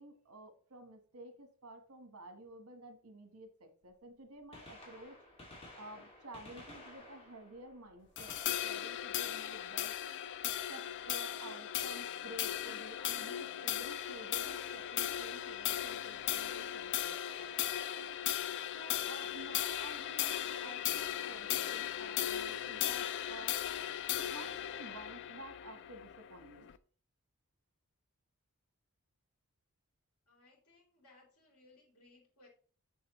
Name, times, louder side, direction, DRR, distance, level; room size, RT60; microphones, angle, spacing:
voice 1, 0.0-5.2 5.8-9.9 10.4-17.8 18.7-23.6 24.2-26.7, right 1 dB, 75° right, 7 dB, 1.3 m, -52 dB
Gunshot gunfire, 3.8-3.9 4.4-10.2 12.2-12.3 13.3-13.4 15.0-15.1 16.5-16.6 16.8-16.9, left 1 dB, 25° left, 2.2 m, -55 dB
sound 1, 8.2-26.8, left 11 dB, 55° left, 0.4 m, -37 dB
voice 2, 30.3-32.5, left 2 dB, 80° left, -2 dB, 3.4 m, -64 dB
7.1 x 6.5 x 3.1 m, 0.43 s
head